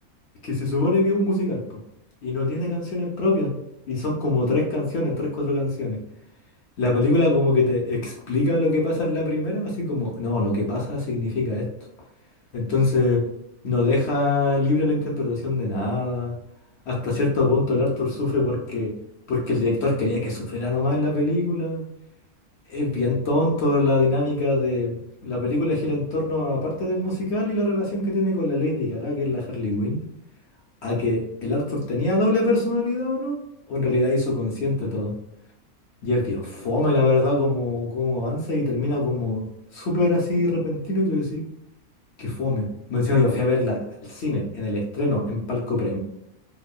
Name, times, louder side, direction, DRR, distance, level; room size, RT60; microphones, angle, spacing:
voice 1, 0.4-1.6 2.2-3.5 3.9-6.0 6.8-11.7 12.5-13.2 13.6-16.3 16.9-19.0 19.3-21.8 22.7-25.0 25.2-30.0 30.8-33.4 33.7-35.1 36.0-39.5 39.7-41.5 42.2-46.0, left 2 dB, 65° left, -2 dB, 0.7 m, -23 dB
2.9 x 2.0 x 2.3 m, 0.80 s
omnidirectional pair, 1.6 m